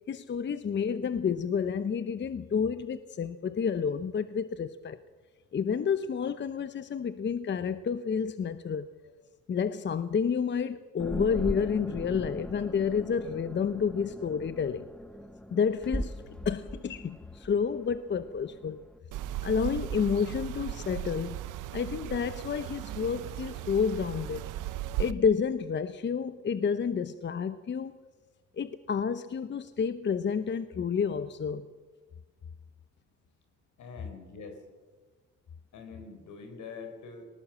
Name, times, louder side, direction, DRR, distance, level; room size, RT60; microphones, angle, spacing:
voice 1, 0.0-5.0 5.5-8.9 9.5-14.9 15.5-16.1 16.4-18.8 19.4-21.4 21.7-24.5 25.0-27.9 28.5-31.7, left 6 dB, 35° left, 13 dB, 0.8 m, -30 dB
sound 1, 11.0-19.0, equal, 5° left, 1.2 m, -40 dB
sound 2, 19.1-25.1, right 13 dB, 85° right, 0.8 m, -37 dB
voice 2, 33.8-34.6 35.7-37.3, left 4 dB, 75° left, 7 dB, 4.2 m, -44 dB
19.5 x 19.0 x 7.4 m, 1.4 s
cardioid pair, 90°, 30 cm